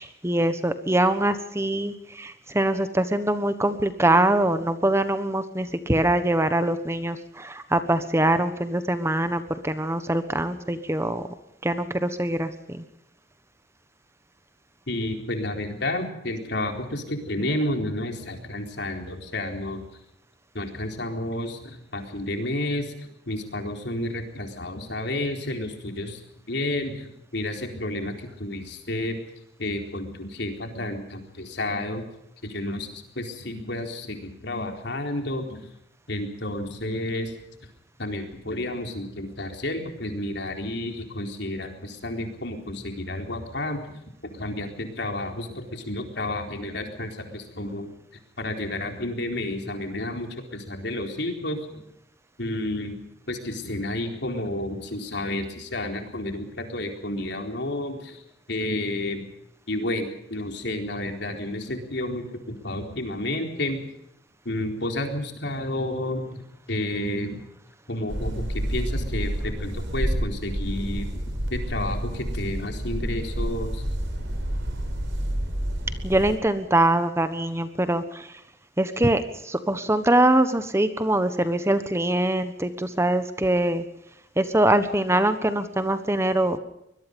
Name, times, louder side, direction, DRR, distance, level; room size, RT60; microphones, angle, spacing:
voice 1, 0.0-11.2 11.6-12.8 76.0-78.3 78.8-83.8 84.4-86.6, right 1 dB, 15° right, 11 dB, 1.3 m, -23 dB
voice 2, 14.9-19.9 20.5-26.2 26.5-29.2 29.6-32.0 32.4-35.7 36.1-37.3 38.0-43.8 44.2-47.9 48.4-51.8 52.4-53.0 53.3-58.2 58.5-59.3 59.7-63.9 64.4-66.4 66.7-67.4 67.9-71.2 71.5-73.8, left 1 dB, 65° left, 4 dB, 4.1 m, -31 dB
sound 1, 68.1-76.4, right 1 dB, 85° right, 4.4 m, -29 dB
23.5 x 21.5 x 5.4 m, 0.79 s
head